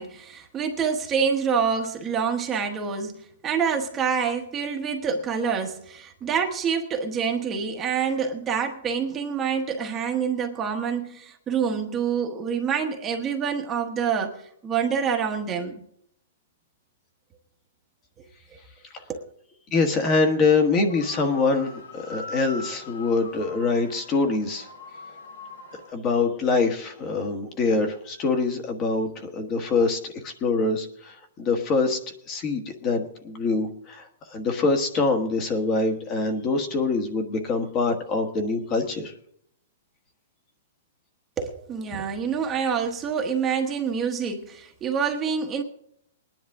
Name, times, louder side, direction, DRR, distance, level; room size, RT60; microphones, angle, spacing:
voice 1, 0.0-14.4 14.6-15.8 19.1-19.3 41.4-45.6, right 6 dB, 15° right, 1.2 m, -27 dB
voice 2, 19.7-24.7 25.9-32.0 32.3-39.1, left 3 dB, 20° left, 1.4 m, -24 dB
sound 1, 20.9-25.9, left 2 dB, 80° left, 7.5 m, -41 dB
20.5 x 10.5 x 3.6 m
hypercardioid pair, 175°, 0 cm